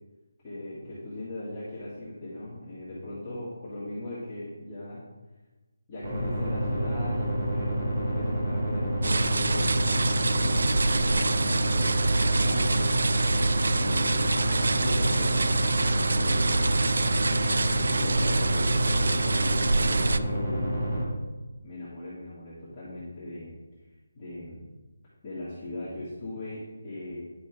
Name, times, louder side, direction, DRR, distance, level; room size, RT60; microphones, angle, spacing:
voice 1, 0.4-5.0 5.9-12.9 13.8-16.8 17.7-21.3 21.6-23.5 24.2-24.6 25.2-27.2, left 1 dB, 15° left, -12 dB, 1.9 m, -39 dB
sound 1, 6.0-21.0, equal, 35° right, 2.1 m, -28 dB
sound 2, 9.0-20.2, right 3 dB, 65° right, 0.4 m, -26 dB
9.6 x 5.9 x 4.5 m, 1.2 s
hypercardioid pair, 175°, 0 cm